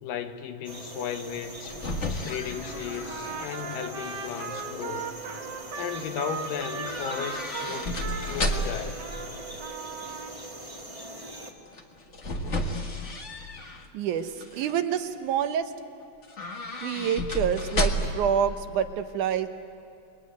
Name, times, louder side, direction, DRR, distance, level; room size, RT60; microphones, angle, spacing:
voice 1, 0.0-1.8 2.1-5.2 5.8-9.1, left 8 dB, 85° left, 2.9 m, -35 dB
sound 1, 0.6-11.5, right 1 dB, 15° right, 1.3 m, -41 dB
sound 2, 1.4-3.7 4.1-4.6 6.8-8.9 11.7-13.9 14.3-14.8 16.2-18.3 18.6-18.7, left 1 dB, 40° left, 1.0 m, -32 dB
Trumpet, 3.1-9.3 9.6-10.4, right 5 dB, 45° right, 1.6 m, -38 dB
voice 2, 13.9-15.7 16.8-19.5, right 8 dB, 70° right, 2.3 m, -27 dB
29.0 x 21.0 x 9.4 m
omnidirectional pair, 3.8 m